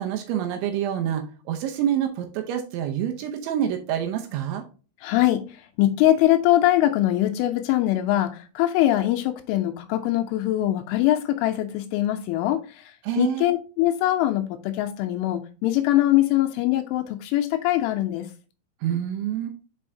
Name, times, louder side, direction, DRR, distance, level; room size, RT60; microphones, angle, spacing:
voice 1, 0.0-4.6 13.0-13.5 18.8-19.5, right 10 dB, 80° right, 2.9 m, -27 dB
voice 2, 5.0-5.4 5.8-12.8 13.2-18.3, left 14 dB, 85° left, 2.9 m, -22 dB
7.0 x 5.4 x 2.7 m
omnidirectional pair, 5.8 m